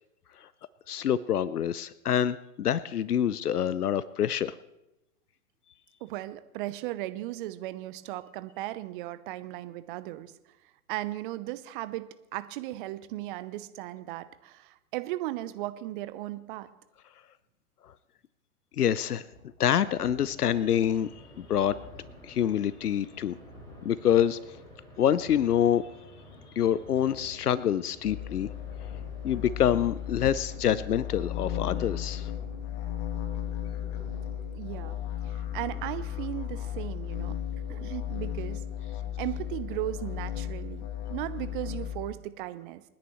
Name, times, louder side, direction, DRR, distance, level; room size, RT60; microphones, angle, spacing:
voice 1, 0.9-4.5 18.8-19.3 19.6-21.1 21.4-21.8 22.2-23.4 23.8-24.4 25.0-25.8 26.6-28.5 29.2-32.3, left 9 dB, 90° left, 17 dB, 0.6 m, -26 dB
voice 2, 6.0-10.3 10.9-16.7 34.5-35.0 35.2-37.4 37.7-38.6 39.2-42.8, right 16 dB, 35° right, 14 dB, 0.8 m, -36 dB
sound 1, 19.1-37.2, left 1 dB, 60° left, 3.7 m, -53 dB
sound 2, 20.4-32.2, left 1 dB, 10° left, 6.7 m, -53 dB
sound 3, 28.0-42.1, left 10 dB, 35° left, 2.0 m, -35 dB
28.5 x 10.0 x 3.1 m, 0.95 s
hypercardioid pair, 120°, 44 cm